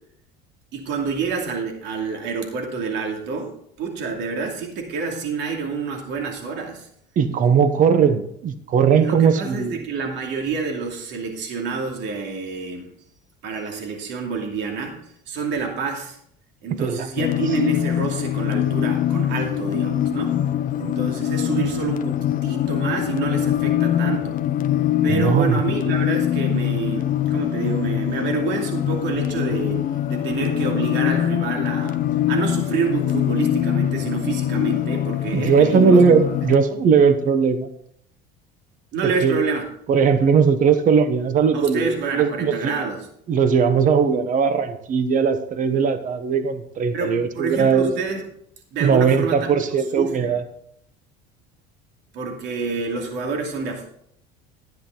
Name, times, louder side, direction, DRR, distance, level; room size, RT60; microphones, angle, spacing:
voice 1, 0.7-3.5 3.8-6.9 9.0-12.9 13.4-16.2 16.6-20.4 20.8-24.4 25.0-29.8 30.1-36.0 38.9-39.6 41.5-43.1 46.9-48.2 48.7-49.7 50.0-50.3 52.1-53.9, right 5 dB, 60° right, 2 dB, 2.6 m, -28 dB
voice 2, 7.2-9.8 16.7-17.1 25.1-25.6 35.3-37.7 39.0-39.4 39.9-42.7 43.3-47.9 48.8-50.4, right 6 dB, 40° right, 11 dB, 1.1 m, -19 dB
sound 1, 17.2-36.6, left 11 dB, 40° left, 0.7 m, -23 dB
11.5 x 9.6 x 3.9 m, 0.68 s
supercardioid pair, 115°, 21 cm